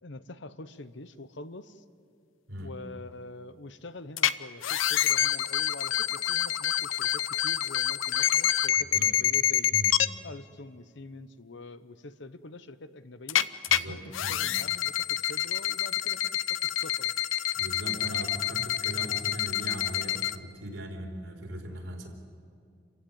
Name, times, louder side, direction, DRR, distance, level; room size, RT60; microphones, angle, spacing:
voice 1, 0.0-1.8 2.6-9.8 10.2-13.5 13.9-17.1, left 2 dB, 65° left, 12 dB, 0.9 m, -45 dB
sound 1, 4.2-4.3 4.6-10.1 13.3-13.8 14.1-20.4, left 11 dB, 85° left, 0.6 m, -27 dB
voice 2, 13.7-14.4 17.5-22.1, right 1 dB, 75° right, 1 dB, 4.0 m, -39 dB
28.5 x 15.5 x 8.7 m, 2.4 s
head